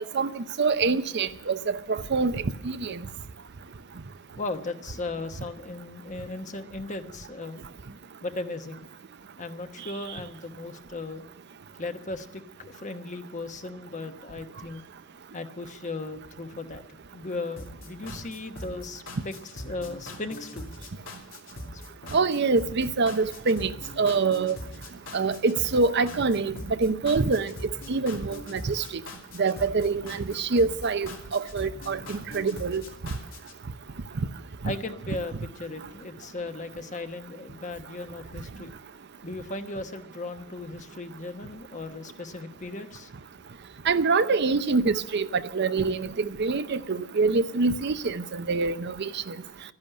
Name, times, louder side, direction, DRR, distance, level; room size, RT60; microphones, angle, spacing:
voice 1, 0.1-3.0 22.1-24.6 25.1-27.5 27.9-28.8 29.4-32.8 43.9-49.3, right 4 dB, 60° right, 0.7 m, -25 dB
voice 2, 4.4-7.7 8.2-8.9 9.4-11.2 11.8-14.8 15.3-19.3 19.6-20.7 21.7-21.8 34.6-38.7 39.2-43.1, left 2 dB, 40° left, 1.1 m, -37 dB
sound 1, 17.6-33.6, left 1 dB, 85° left, 2.6 m, -42 dB
12.5 x 10.5 x 8.9 m
head